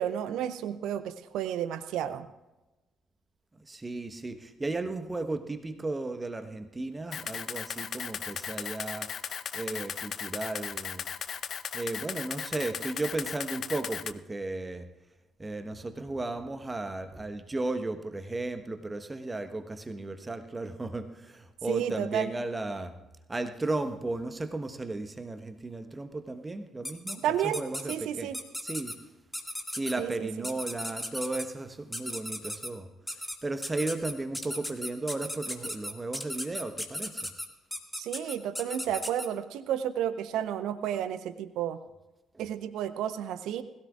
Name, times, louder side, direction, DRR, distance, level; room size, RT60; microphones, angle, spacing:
voice 1, 0.0-2.3 21.7-22.3 27.2-27.6 27.9-28.4 30.0-30.5 38.0-41.8 42.4-43.6, right 10 dB, 60° right, 13 dB, 0.6 m, -31 dB
voice 2, 3.5-9.1 9.5-11.1 11.7-14.9 15.4-22.9 23.3-28.3 28.6-29.0 29.7-37.3, right 2 dB, 20° right, 9 dB, 1.2 m, -35 dB
Camera, 7.1-14.1, left 8 dB, 50° left, 0.4 m, -36 dB
sound 1, 26.8-27.2 27.5-28.0 28.3-28.9 29.3-29.9 30.4-31.5 31.9-32.7 33.1-33.4 33.6-39.3, equal, 5° left, 2.0 m, -36 dB
21.0 x 16.0 x 2.4 m, 1.0 s
figure-of-eight pair, 45°, 0 cm